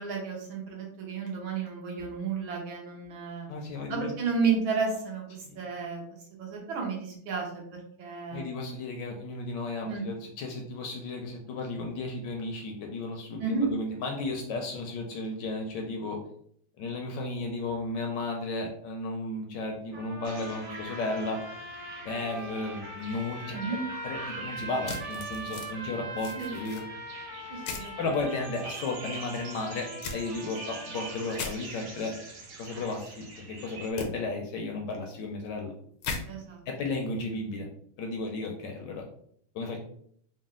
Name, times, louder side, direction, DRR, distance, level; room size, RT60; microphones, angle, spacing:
voice 1, 0.0-3.5 3.9-6.0 6.4-7.6 8.0-8.5 9.8-10.1 13.4-13.7 23.5-23.8 26.3-26.5 27.5-28.0 36.3-36.6, right 5 dB, 75° right, -1 dB, 1.7 m, -32 dB
voice 2, 3.5-4.1 5.5-5.6 8.3-16.2 16.8-21.4 22.0-26.8 28.0-32.1 32.6-35.7 36.7-37.7 38.0-39.0 39.5-39.8, left 2 dB, 75° left, 2 dB, 1.1 m, -34 dB
sound 1, 19.9-31.5, right 2 dB, 40° right, 1.1 m, -41 dB
sound 2, 20.2-33.9, right 3 dB, 60° right, 1.0 m, -46 dB
sound 3, 24.8-25.7 26.2-26.8 27.6-27.9 30.0-30.2 31.3-31.5 34.0-34.1 36.0-36.2, left 5 dB, 90° left, 1.5 m, -36 dB
4.1 x 2.2 x 3.6 m, 0.65 s
omnidirectional pair, 2.2 m